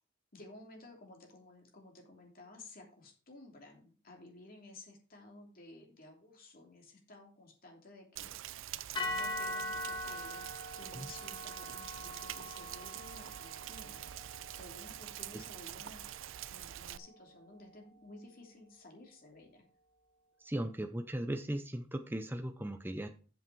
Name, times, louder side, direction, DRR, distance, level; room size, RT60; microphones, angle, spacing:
voice 1, 0.3-8.4 8.9-14.0 14.5-16.1 16.5-19.7, left 2 dB, 45° left, 1 dB, 3.0 m, -54 dB
Rain, 8.2-17.0, right 12 dB, 65° right, 0.4 m, -45 dB
sound 1, 8.9-17.2, left 1 dB, 25° left, 1.6 m, -43 dB
voice 2, 20.4-23.1, right 1 dB, 10° right, 6 dB, 0.6 m, -37 dB
9.0 x 7.5 x 4.6 m, 0.39 s
head